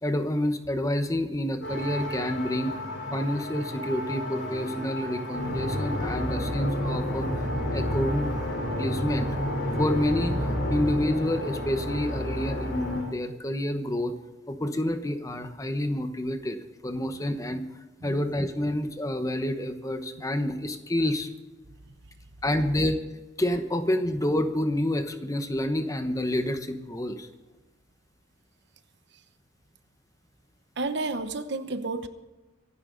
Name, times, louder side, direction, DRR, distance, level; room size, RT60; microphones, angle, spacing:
voice 1, 0.0-2.7 3.1-8.3 8.8-9.3 9.8-14.2 14.5-17.6 18.0-21.3 22.4-23.0 23.4-27.3, left 1 dB, 20° left, 8 dB, 1.0 m, -28 dB
sound 1, 1.6-13.0, equal, 75° left, 6.9 m, -30 dB
voice 2, 30.8-32.1, right 3 dB, 65° right, 10 dB, 1.0 m, -31 dB
25.0 x 11.5 x 4.0 m, 1.1 s
head